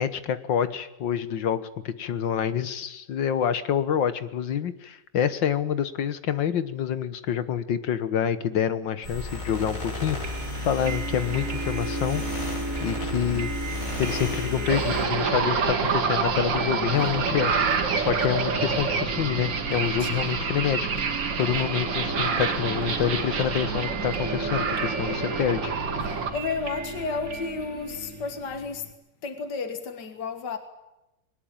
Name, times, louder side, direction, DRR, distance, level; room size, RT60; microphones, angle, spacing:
voice 1, 0.0-12.2 12.8-13.5 14.0-17.5 18.0-25.7, left 9 dB, 90° left, 2.1 m, -27 dB
sound 1, 9.0-15.1, left 2 dB, 45° left, 6.7 m, -33 dB
sound 2, 10.2-28.9, right 3 dB, 50° right, 3.4 m, -35 dB
sound 3, 14.7-26.3, right 5 dB, 85° right, 2.6 m, -27 dB
voice 2, 26.3-28.8 29.2-30.6, left 4 dB, 65° left, 2.4 m, -32 dB
22.0 x 19.5 x 8.8 m
omnidirectional pair, 2.0 m